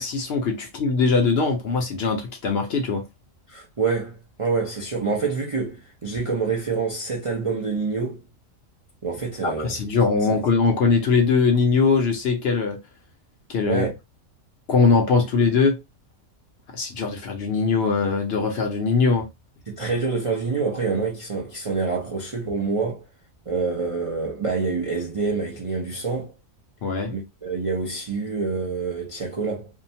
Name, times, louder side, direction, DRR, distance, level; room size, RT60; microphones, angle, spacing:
voice 1, 0.0-3.0 9.4-12.8 13.5-13.8 14.7-15.8 16.7-19.3 26.8-27.1, left 4 dB, 60° left, 0.7 m, -21 dB
voice 2, 3.5-8.2 9.0-9.7 10.3-10.4 13.7-13.9 19.7-23.0 23.5-26.3 27.1-29.7, right 4 dB, 50° right, 0.4 m, -26 dB
2.7 x 2.1 x 2.6 m
omnidirectional pair, 1.4 m